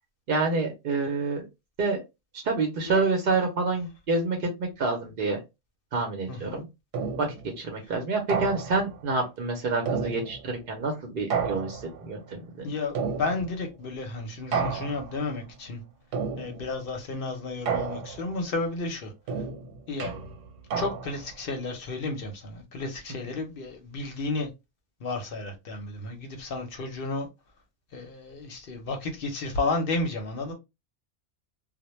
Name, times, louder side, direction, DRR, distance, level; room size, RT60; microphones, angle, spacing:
voice 1, 0.3-1.5 1.8-2.0 2.3-5.4 5.9-6.7 7.2-12.8, right 3 dB, 55° right, 0.7 m, -28 dB
voice 2, 6.3-6.6 12.6-15.8 16.4-19.1 19.9-20.1 20.7-24.5 25.0-27.3 27.9-30.5, left 3 dB, 55° left, 0.8 m, -32 dB
sound 1, 6.9-7.5 8.3-9.0 9.9-10.6 11.3-12.1 12.9-13.7 14.5-15.2 16.1-16.8 17.7-18.4 19.3-21.3, right 5 dB, 90° right, 1.1 m, -31 dB
2.1 x 2.1 x 3.0 m
omnidirectional pair, 1.3 m